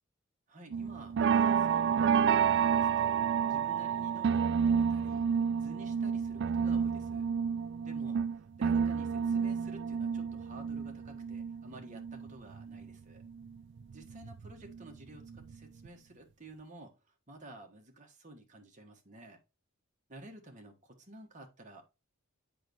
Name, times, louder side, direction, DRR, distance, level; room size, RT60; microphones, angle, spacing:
voice 1, 0.5-3.2 3.5-5.3 5.6-7.2 7.8-8.2 8.6-13.2 13.9-17.0 17.3-19.4 20.1-21.8, right 1 dB, 35° right, 1.4 m, -52 dB
sound 1, 0.7-12.9 13.2-14.8 15.2-15.5 15.9-16.0, right 7 dB, 55° right, 0.3 m, -30 dB
7.7 x 5.2 x 3.0 m
head